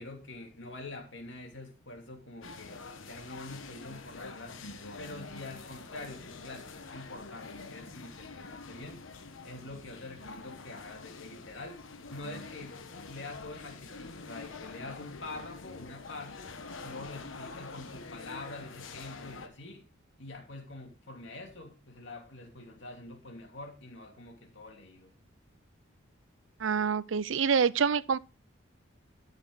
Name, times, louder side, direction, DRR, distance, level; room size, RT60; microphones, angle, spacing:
voice 1, 0.0-2.8 3.1-4.7 5.0-9.1 9.4-11.8 12.1-16.5 16.8-19.8 20.2-25.1, left 2 dB, 65° left, 2.8 m, -45 dB
sound 1, 2.4-19.5, left 3 dB, 80° left, 1.2 m, -46 dB
voice 2, 26.6-28.2, right 6 dB, 75° right, 0.5 m, -26 dB
13.0 x 6.5 x 4.0 m
head